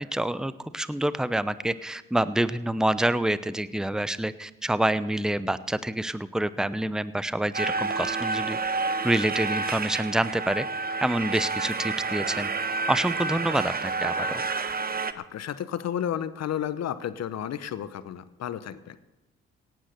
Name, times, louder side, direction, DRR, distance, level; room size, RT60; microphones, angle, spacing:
voice 1, 0.0-8.6 9.0-10.6 11.0-12.5 12.9-14.4, right 1 dB, ahead, 15 dB, 0.8 m, -27 dB
sound 1, 7.5-15.1, right 4 dB, 30° right, 1.0 m, -29 dB
voice 2, 15.1-19.0, left 9 dB, 60° left, 14 dB, 1.0 m, -32 dB
17.0 x 9.2 x 6.7 m, 1.0 s
supercardioid pair, 55°, 29 cm